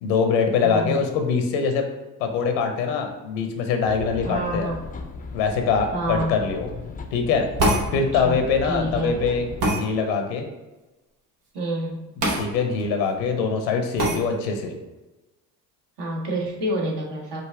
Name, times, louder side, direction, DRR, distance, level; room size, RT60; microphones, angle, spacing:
voice 1, 0.0-1.9 2.2-4.7 5.3-6.7 7.1-7.5 7.9-10.4 12.4-14.8, left 5 dB, 85° left, 5 dB, 0.8 m, -23 dB
voice 2, 0.6-1.0 4.2-4.8 5.9-6.3 7.9-8.4 8.6-9.2 11.5-12.0 14.1-14.2 16.0-17.4, right 1 dB, 55° right, -1 dB, 1.4 m, -28 dB
sound 1, 3.8-9.7, left 4 dB, 20° left, 0.5 m, -36 dB
sound 2, 7.6-7.9 9.6-9.8 12.2-12.4 12.8-12.9 14.0-14.2, right 1 dB, 75° right, 1.2 m, -21 dB
5.0 x 2.6 x 3.6 m, 1.1 s
hypercardioid pair, 55°, 49 cm